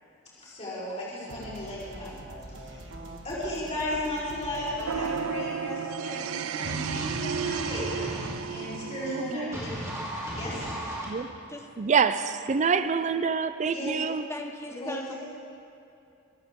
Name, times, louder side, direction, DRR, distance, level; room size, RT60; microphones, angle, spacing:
voice 1, 0.4-2.1 2.5-2.8 3.2-9.7 10.4-10.6 13.7-13.9 14.7-15.1, left 1 dB, 35° left, -9 dB, 4.4 m, -35 dB
sound 1, 1.3-7.3, right 2 dB, 60° right, 1.4 m, -45 dB
sound 2, 4.8-9.3, right 6 dB, 90° right, 0.5 m, -33 dB
sound 3, 6.6-8.3 9.5-11.1, right 1 dB, 15° right, 3.6 m, -36 dB
voice 2, 11.8-14.2, right 6 dB, 35° right, 12 dB, 0.4 m, -26 dB
voice 3, 14.3-15.1, left 1 dB, 15° left, 3 dB, 1.1 m, -39 dB
24.5 x 14.0 x 3.7 m, 2.6 s
head